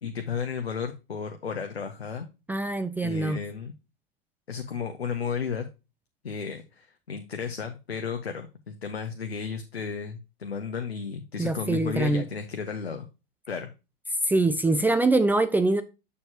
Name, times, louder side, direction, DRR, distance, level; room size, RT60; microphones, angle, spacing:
voice 1, 0.0-2.3 3.0-3.7 4.5-5.7 6.2-13.1 13.5-13.7, left 6 dB, 80° left, 0.9 m, -33 dB
voice 2, 2.5-3.4 11.4-12.3 14.2-15.8, right 2 dB, 5° right, 0.4 m, -24 dB
7.0 x 6.6 x 2.8 m
figure-of-eight pair, 85°, 30 cm